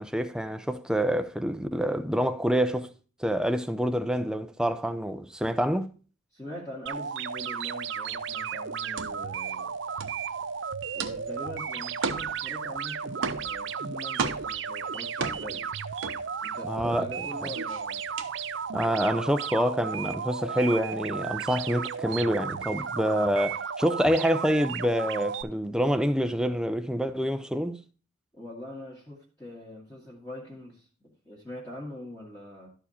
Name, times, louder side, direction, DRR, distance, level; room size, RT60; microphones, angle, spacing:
voice 1, 0.0-2.9 3.2-5.9 16.7-17.1 18.7-27.8, equal, 5° right, 0.5 m, -27 dB
voice 2, 6.3-9.7 10.9-15.7 16.4-18.0 28.3-30.9 31.3-32.7, left 1 dB, 15° left, 1.7 m, -42 dB
sound 1, 6.9-25.4, right 6 dB, 65° right, 0.5 m, -34 dB
sound 2, 8.1-16.8 17.1-19.0, right 4 dB, 80° right, 0.9 m, -36 dB
12.0 x 4.7 x 4.3 m
head